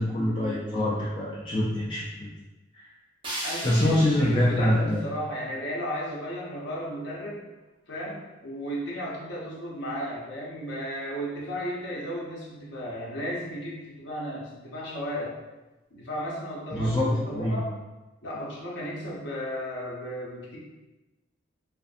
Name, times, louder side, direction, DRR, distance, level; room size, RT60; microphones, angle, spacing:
voice 1, 0.0-2.3 2.7-2.8 3.6-5.0 16.7-17.5, left 1 dB, 25° left, -7 dB, 0.3 m, -25 dB
sound 1, 3.2-6.2, right 1 dB, 25° right, 0.5 m, -39 dB
voice 2, 3.4-7.4 7.9-15.3 15.9-17.7 18.2-20.6, equal, 60° left, -4 dB, 0.7 m, -34 dB
2.5 x 2.5 x 2.4 m, 1.1 s
head